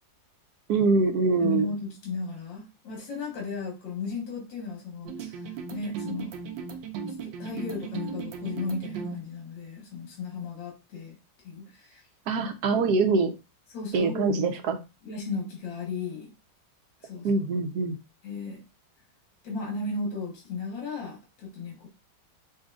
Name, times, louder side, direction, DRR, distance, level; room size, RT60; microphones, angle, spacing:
voice 1, 0.7-1.7 12.3-13.4 13.9-14.8 17.2-18.0, right 4 dB, 70° right, 1.1 m, -24 dB
voice 2, 1.4-5.4 5.7-6.4 7.2-11.2 11.4-12.0 13.7-14.5 15.0-16.3 17.0-17.4 18.2-18.6 19.4-21.9, left 4 dB, 80° left, 2.0 m, -35 dB
sound 1, 5.1-9.2, right 5 dB, 85° right, 1.3 m, -37 dB
5.8 x 2.6 x 2.4 m
omnidirectional pair, 2.0 m